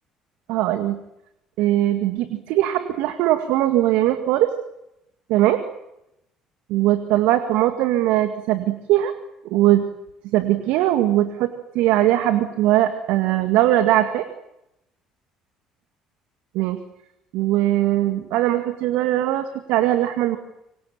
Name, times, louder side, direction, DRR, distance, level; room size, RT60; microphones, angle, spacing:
voice 1, 0.5-1.0 1.6-4.5 5.3-5.6 6.7-9.1 9.5-9.8 10.3-14.3 16.5-16.8 17.3-20.4, right 14 dB, 70° right, 9 dB, 2.0 m, -20 dB
27.0 x 25.0 x 7.4 m, 0.86 s
hypercardioid pair, 55°, 2 cm